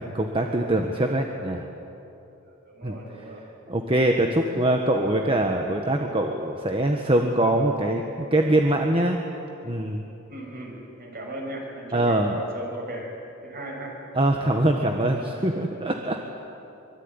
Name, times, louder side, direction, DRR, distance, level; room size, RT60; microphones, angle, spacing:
voice 1, 0.0-1.6 2.8-3.4 3.7-9.2 9.6-10.0 11.9-12.4 14.1-16.2, right 1 dB, 25° right, 3 dB, 1.5 m, -23 dB
voice 2, 2.7-3.4 4.4-4.5 10.3-13.1 13.4-14.0, right 1 dB, 45° right, 0 dB, 6.8 m, -37 dB
25.0 x 23.5 x 9.9 m, 2.9 s
head